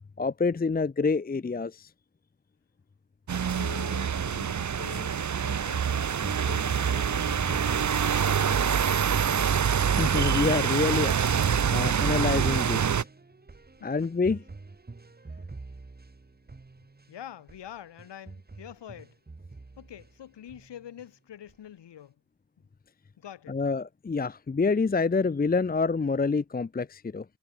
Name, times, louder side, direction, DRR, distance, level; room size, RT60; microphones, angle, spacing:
voice 1, 0.2-1.9 10.0-11.2 11.7-13.0 13.8-14.4 23.5-27.2, left 4 dB, 20° left, 1.0 m, -27 dB
sound 1, 3.3-13.0, right 7 dB, 35° right, 1.5 m, -26 dB
voice 2, 3.4-8.9 13.8-14.1 15.3-15.5 17.1-19.2 19.8-22.1 23.2-23.6, left 10 dB, 55° left, 4.6 m, -45 dB
sound 2, 6.2-17.1 17.5-17.7 18.0-20.1 20.5-21.1 21.5-21.6, right 3 dB, 20° right, 2.8 m, -43 dB
hypercardioid pair, 45°, 49 cm